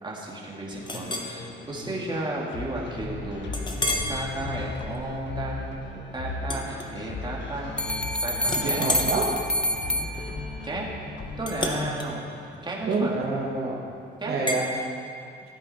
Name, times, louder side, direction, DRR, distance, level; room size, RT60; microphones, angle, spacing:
voice 1, 0.0-5.7 5.9-7.7 8.2-8.9 9.9-10.1 10.6-10.9 11.4-12.3 12.6-13.1 14.2-14.4, right 2 dB, 25° right, -3 dB, 2.3 m, -34 dB
Piano with The Bends, 0.7-12.0, left 3 dB, 65° left, 1.4 m, -37 dB
Chink clink, 0.9-1.3 1.9-2.0 2.5-2.6 3.5-4.2 4.7-5.0 6.4-7.4 7.7-8.1 8.4-13.5 14.5-14.7, left 2 dB, 20° left, 1.3 m, -33 dB
sound 1, 7.8-10.8, equal, 5° left, 0.5 m, -28 dB
voice 2, 8.6-9.3 12.9-13.8 14.3-14.7, right 3 dB, 55° right, -3 dB, 1.7 m, -27 dB
15.0 x 8.6 x 4.3 m, 2.5 s
cardioid pair, 90°, 20 cm